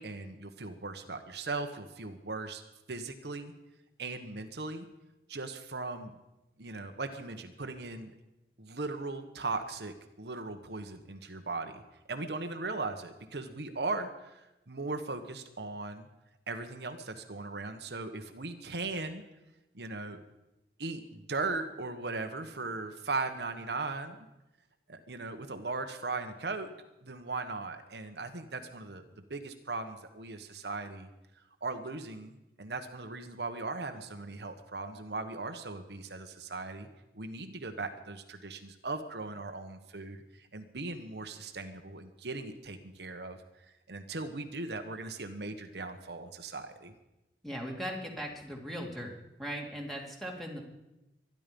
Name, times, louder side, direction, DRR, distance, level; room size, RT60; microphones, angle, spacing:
voice 1, 0.0-2.6 2.9-3.5 4.0-4.9 5.3-6.1 6.6-8.1 8.6-11.8 12.1-16.1 16.5-19.2 19.7-20.2 20.8-24.2 24.9-26.7 27.0-31.1 31.6-36.9 37.1-43.4 43.9-46.9, right 3 dB, 70° right, 6 dB, 1.2 m, -38 dB
voice 2, 47.4-49.1 49.4-50.6, equal, ahead, 0 dB, 2.7 m, -38 dB
24.0 x 11.0 x 5.3 m, 0.96 s
head